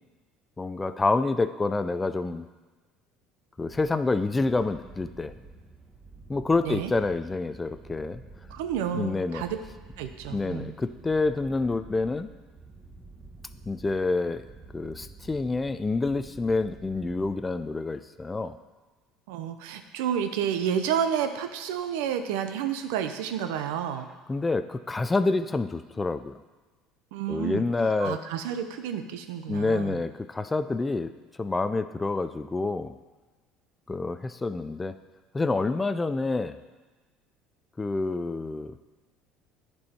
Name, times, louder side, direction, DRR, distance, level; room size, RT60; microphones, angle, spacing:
voice 1, 0.6-2.5 3.6-5.3 6.3-8.2 8.9-9.4 10.3-12.3 13.7-14.5 14.7-18.6 24.3-26.4 27.3-28.2 29.5-31.1 31.4-32.9 33.9-34.9 35.3-36.6 37.8-38.8, left 3 dB, 15° left, 11 dB, 0.4 m, -27 dB
sound 1, 3.6-17.8, right 3 dB, 15° right, 1.1 m, -49 dB
voice 2, 6.6-6.9 8.5-9.6 10.0-10.7 19.3-24.1 27.1-27.6 28.0-30.0, right 8 dB, 90° right, 8 dB, 0.6 m, -30 dB
10.5 x 4.6 x 4.3 m, 1.3 s
cardioid pair, 115°, 0 cm